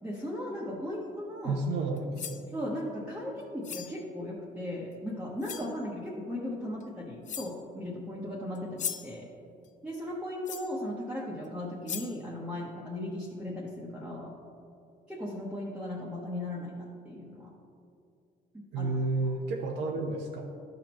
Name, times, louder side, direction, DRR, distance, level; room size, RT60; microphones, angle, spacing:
voice 1, 0.0-1.6 2.5-9.3 9.8-14.3 15.1-17.5 18.5-18.9, left 1 dB, 5° right, -6 dB, 1.0 m, -37 dB
voice 2, 1.4-2.5 18.7-20.5, right 3 dB, 85° right, 0 dB, 0.8 m, -31 dB
sound 1, 2.0-2.5 3.6-4.0 4.9-5.0 5.4-5.7 6.8-6.9 7.2-7.6 8.5-9.2 10.4-10.8 11.4-11.5 11.9-12.2, left 8 dB, 45° left, 0.5 m, -38 dB
12.0 x 5.2 x 3.0 m, 2.5 s
cardioid pair, 110°, 17 cm